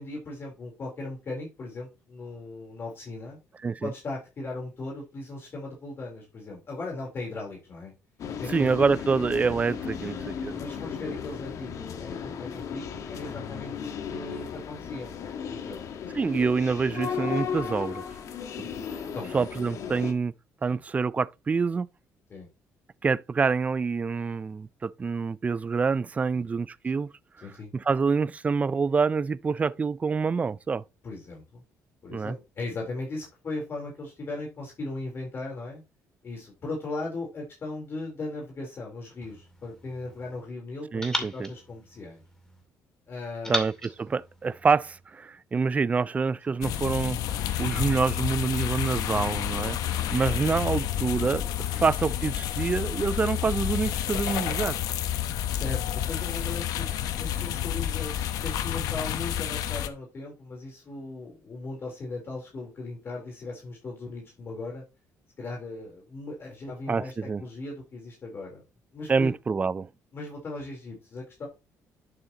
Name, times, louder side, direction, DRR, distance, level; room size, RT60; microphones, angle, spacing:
voice 1, 0.0-3.4 3.8-7.9 8.4-8.7 10.6-15.1 15.5-15.9 19.1-19.5 20.7-20.8 22.3-22.5 26.3-26.5 27.4-27.7 31.0-31.6 32.0-35.8 36.2-42.2 43.1-43.6 49.8-50.1 51.7-51.8 55.5-64.8 65.4-68.6 68.9-69.3 70.1-71.5, left 2 dB, 40° left, 3.7 m, -38 dB
sound 1, 8.2-20.1, left 7 dB, 60° left, 1.5 m, -35 dB
voice 2, 8.5-10.6 16.1-18.0 18.6-18.7 19.3-20.3 20.6-21.9 23.0-27.1 27.7-30.8 32.1-32.3 40.9-41.5 43.5-54.8 66.9-67.4 69.1-69.9, right 5 dB, 25° right, 0.4 m, -26 dB
sound 2, 39.2-40.4 41.0-42.6 43.4-45.0, left 1 dB, 10° left, 2.3 m, -37 dB
sound 3, 46.6-59.9, left 11 dB, 80° left, 1.0 m, -30 dB
11.0 x 6.8 x 2.9 m
cardioid pair, 110°, 6 cm